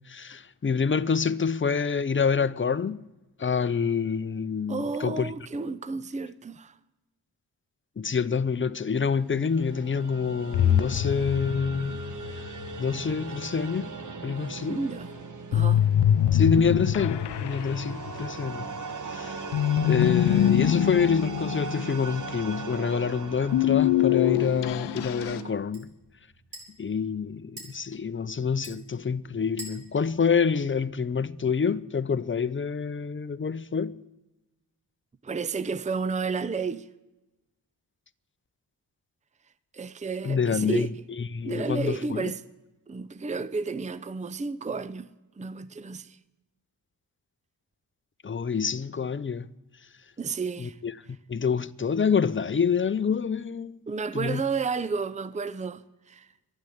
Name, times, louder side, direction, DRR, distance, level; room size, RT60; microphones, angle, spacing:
voice 1, 0.1-3.0 3.4-5.3 8.0-12.0 12.4-12.5 12.8-13.9 14.2-14.8 16.3-18.7 19.1-19.5 19.8-25.9 26.8-34.0 40.2-40.9 41.2-42.3 48.2-49.5 50.6-53.8 54.1-54.4, left 6 dB, 30° left, 0.6 m, -27 dB
voice 2, 4.7-6.8 14.7-15.1 15.5-15.8 35.2-36.9 39.7-40.9 41.4-42.4 42.9-45.1 45.4-46.2 50.2-50.8 53.9-56.3, right 4 dB, 15° right, 0.6 m, -31 dB
sound 1, 9.1-25.5, right 4 dB, 45° right, 1.4 m, -39 dB
sound 2, 10.5-12.7 15.5-18.6 19.5-22.5 23.5-25.4, left 11 dB, 85° left, 0.6 m, -24 dB
sound 3, 23.5-31.3, right 2 dB, 70° right, 4.5 m, -50 dB
11.5 x 10.5 x 9.3 m
cardioid pair, 60°, 41 cm